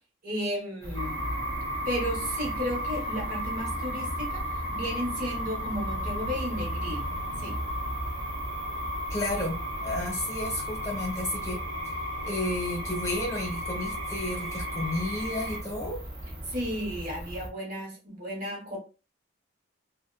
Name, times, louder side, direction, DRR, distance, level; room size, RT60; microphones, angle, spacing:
voice 1, 0.2-1.2 1.9-7.1 7.4-7.6 16.5-18.8, equal, 45° right, 0.9 m, -33 dB
sound 1, 0.8-17.5, equal, 30° right, 0.6 m, -38 dB
sound 2, 0.9-15.6, equal, 75° right, 1.2 m, -35 dB
voice 2, 9.1-11.6 12.2-16.0, left 1 dB, 15° left, 0.9 m, -32 dB
2.6 x 2.2 x 2.2 m
head